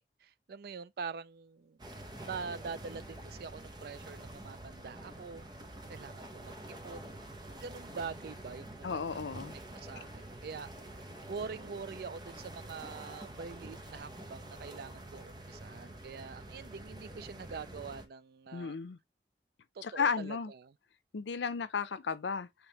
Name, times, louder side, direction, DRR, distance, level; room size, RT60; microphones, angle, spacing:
voice 1, 0.0-1.8 2.3-5.5 5.9-9.0 9.7-10.7 11.3-18.8 19.7-20.7, right 5 dB, 60° right, 0.4 m, -44 dB
sound 1, 1.8-18.1, right 1 dB, 25° right, 0.8 m, -47 dB
voice 2, 8.8-9.6 18.5-19.0 19.8-20.5 21.1-22.5, left 5 dB, 85° left, 0.6 m, -34 dB
5.3 x 3.4 x 2.9 m
head